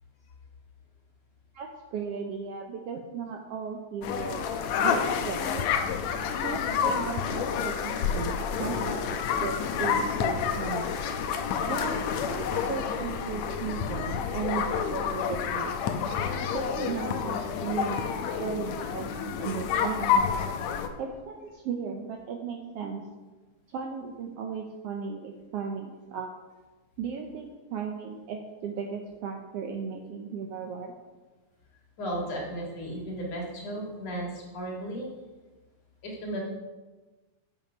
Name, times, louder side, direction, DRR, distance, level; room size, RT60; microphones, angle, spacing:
voice 1, 1.5-4.5 4.8-5.8 6.4-11.0 11.7-15.7 16.5-20.2 21.0-23.0 23.7-26.3 27.0-30.9, right 6 dB, 75° right, 2 dB, 1.5 m, -36 dB
sound 1, 4.0-20.9, left 7 dB, 80° left, 1.8 m, -29 dB
voice 2, 32.0-35.1 36.0-36.4, right 1 dB, 60° left, -2 dB, 3.0 m, -34 dB
9.0 x 5.6 x 5.3 m, 1.2 s
omnidirectional pair, 3.4 m